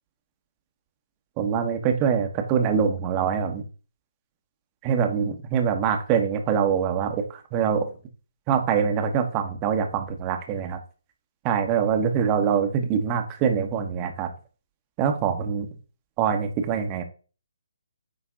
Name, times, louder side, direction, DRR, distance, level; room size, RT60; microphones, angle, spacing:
voice 1, 1.4-3.6 4.8-7.9 8.5-10.8 11.4-14.3 15.0-15.7 16.2-17.0, right 7 dB, 20° right, 6 dB, 1.0 m, -24 dB
9.0 x 3.2 x 3.8 m, 0.36 s
figure-of-eight pair, 140°, 0 cm